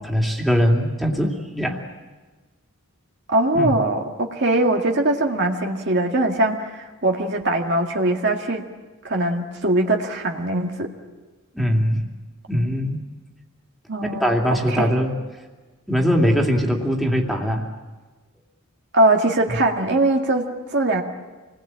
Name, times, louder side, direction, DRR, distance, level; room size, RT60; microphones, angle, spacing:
voice 1, 0.0-1.8 3.5-3.8 11.5-12.1 12.5-13.0 14.2-15.1 15.9-17.7, equal, ahead, 1 dB, 2.7 m, -21 dB
voice 2, 3.3-8.7 9.0-10.9 13.9-14.4 14.7-15.0 18.9-21.0, right 2 dB, 50° right, 2 dB, 1.9 m, -21 dB
27.5 x 21.0 x 8.8 m, 1.3 s
head